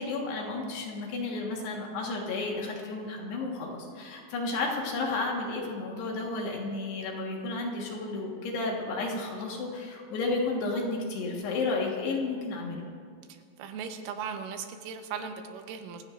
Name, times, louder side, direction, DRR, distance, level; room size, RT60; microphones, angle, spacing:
voice 1, 0.0-12.8, left 3 dB, 65° left, -1 dB, 3.2 m, -32 dB
voice 2, 13.3-16.0, right 6 dB, 85° right, 6 dB, 3.6 m, -38 dB
25.0 x 16.0 x 2.5 m, 2.1 s
omnidirectional pair, 5.6 m